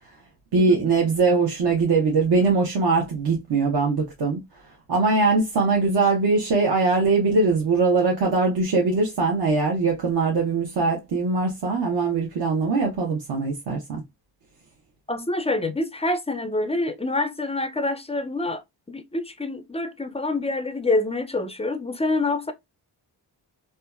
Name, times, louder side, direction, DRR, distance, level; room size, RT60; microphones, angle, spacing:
voice 1, 0.5-4.4 4.9-14.0, right 3 dB, 65° right, 0.9 m, -21 dB
voice 2, 15.1-18.6 18.9-22.5, left 2 dB, 15° left, 0.3 m, -26 dB
2.7 x 2.2 x 2.3 m
cardioid pair, 60°, 44 cm